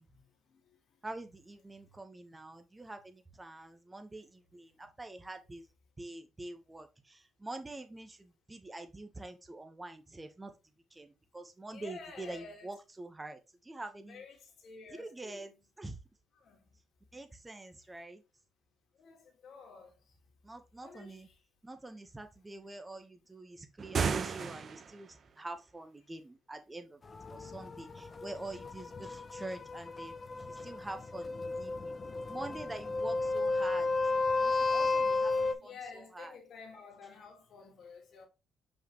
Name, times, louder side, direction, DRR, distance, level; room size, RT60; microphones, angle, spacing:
voice 1, 0.1-1.0 1.8-2.0 2.3-2.4 4.8-4.9 11.7-12.7 14.1-15.6 16.4-16.8 18.9-20.2 20.8-21.4 27.3-27.4 35.2-38.3, left 4 dB, 65° left, 2.1 m, -52 dB
voice 2, 1.0-5.7 6.0-10.5 10.9-14.2 15.0-15.5 15.8-16.0 17.1-18.2 20.4-21.3 21.6-27.0 27.3-30.2 30.5-32.0 32.3-36.3, right 2 dB, 15° right, 1.3 m, -46 dB
sound 1, 23.8-25.1, right 6 dB, 50° right, 0.8 m, -33 dB
sound 2, 27.1-35.5, left 3 dB, 35° left, 0.7 m, -33 dB
5.7 x 5.1 x 3.2 m
cardioid pair, 90°, 0 cm